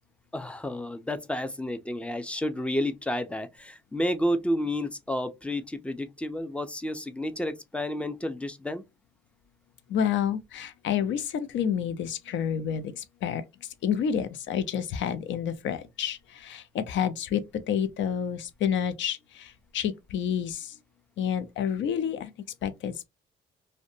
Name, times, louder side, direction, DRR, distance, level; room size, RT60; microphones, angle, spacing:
voice 1, 0.3-8.8, left 1 dB, 5° left, 0.4 m, -31 dB
voice 2, 9.9-13.4 13.8-20.7 21.2-22.3 22.6-23.0, left 8 dB, 70° left, 0.5 m, -29 dB
2.5 x 2.2 x 2.6 m
cardioid pair, 90°, 20 cm